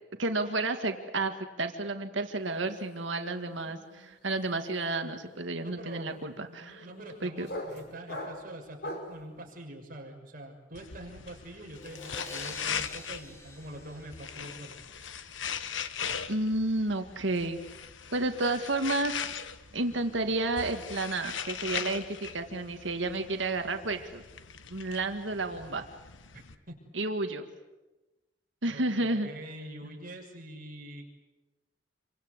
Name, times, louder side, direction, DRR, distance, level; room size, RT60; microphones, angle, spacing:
voice 1, 0.2-1.3 1.6-6.9 7.2-7.5 16.3-17.6 18.1-19.3 19.7-24.2 24.7-25.8 26.9-27.4 28.6-29.3 29.8-30.0, right 2 dB, 75° right, 6 dB, 2.0 m, -31 dB
sound 1, 2.4-2.7 3.0-9.2, left 1 dB, 60° left, 5.7 m, -43 dB
voice 2, 5.6-6.1 6.8-14.8 26.3-26.8 28.7-31.1, right 1 dB, 50° right, 2 dB, 6.1 m, -45 dB
sound 2, 10.8-26.6, left 7 dB, 85° left, 1.3 m, -40 dB
sound 3, 11.8-14.7, left 2 dB, 15° left, 3.8 m, -47 dB
27.5 x 25.0 x 8.2 m, 1.1 s
head